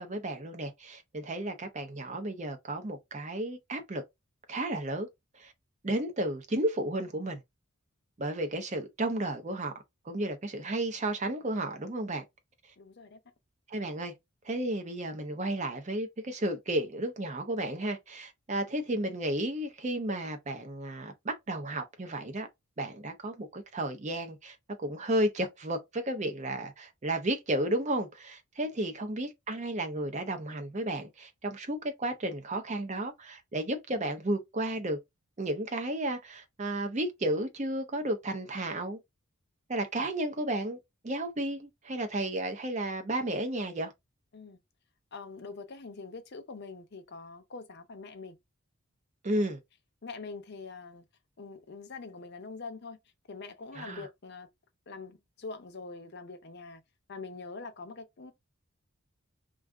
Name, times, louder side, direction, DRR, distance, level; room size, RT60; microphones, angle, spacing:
voice 1, 0.0-4.0 4.5-5.1 5.3-5.5 5.8-7.4 8.2-9.7 10.0-12.2 13.7-14.1 14.4-22.5 22.8-24.6 24.8-35.0 35.4-39.0 39.7-40.8 41.0-43.9 49.2-49.6 53.7-54.0, right 1 dB, 35° right, 0.6 m, -33 dB
voice 2, 12.8-13.2 44.3-44.6 45.1-48.4 49.3-49.5 50.0-51.0 51.4-53.0 53.3-54.5 54.9-56.8 57.1-58.3, left 4 dB, 50° left, 0.6 m, -44 dB
2.4 x 2.4 x 3.4 m
head